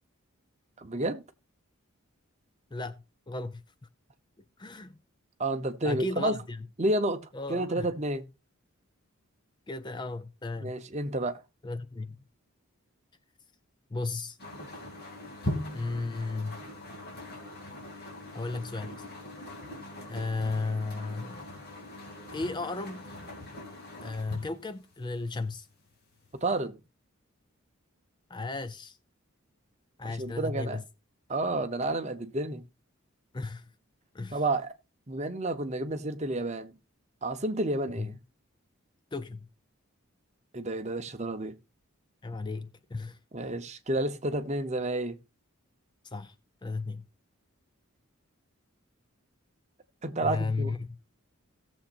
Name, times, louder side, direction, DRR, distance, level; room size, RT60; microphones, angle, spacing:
voice 1, 0.8-1.2 5.4-6.4 6.8-7.2 7.5-8.3 10.6-11.4 26.4-26.8 30.2-30.8 31.3-32.6 34.3-34.7 35.1-36.7 37.2-38.2 40.5-41.5 43.3-45.2 50.0-50.8, right 2 dB, 30° right, 0.8 m, -30 dB
voice 2, 2.7-3.6 4.6-5.0 5.8-6.7 7.3-7.9 9.7-10.8 11.6-12.2 13.9-14.4 15.7-16.6 18.3-19.0 20.1-21.5 22.3-23.1 24.0-25.7 28.3-29.0 30.0-30.8 33.3-33.7 34.1-34.4 38.0-38.2 39.1-39.5 42.2-43.2 46.0-46.4 46.6-47.1 50.2-51.0, left 3 dB, 20° left, 0.4 m, -35 dB
sound 1, 14.4-25.7 26.2-26.6, left 1 dB, 45° left, 2.7 m, -41 dB
17.5 x 7.3 x 2.5 m
head